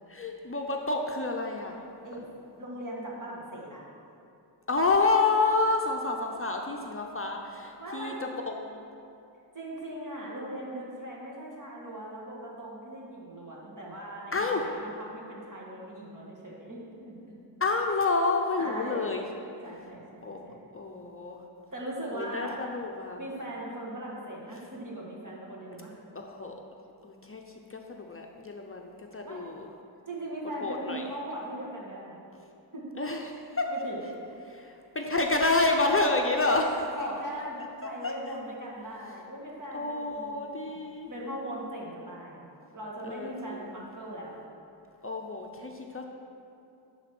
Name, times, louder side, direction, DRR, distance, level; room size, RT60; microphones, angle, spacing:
voice 1, 0.1-1.8 4.7-8.8 14.3-14.7 17.6-19.3 20.2-20.4 20.7-21.4 22.1-23.2 26.2-26.5 27.0-27.4 27.7-29.7 30.6-31.0 33.0-33.7 34.5-36.9 38.0-38.1 39.7-41.1 43.0-43.3 45.0-46.0, left 3 dB, 30° left, 1 dB, 0.6 m, -29 dB
voice 2, 2.6-3.8 7.8-8.2 9.5-17.4 18.6-19.1 19.6-20.6 21.7-22.7 23.2-26.0 29.2-29.4 30.1-32.2 32.7-32.8 33.7-34.0 36.9-40.8 41.1-42.5 42.7-44.4, right 1 dB, 45° right, -4 dB, 2.0 m, -39 dB
11.5 x 4.1 x 6.0 m, 2.7 s
wide cardioid pair, 95°, 42 cm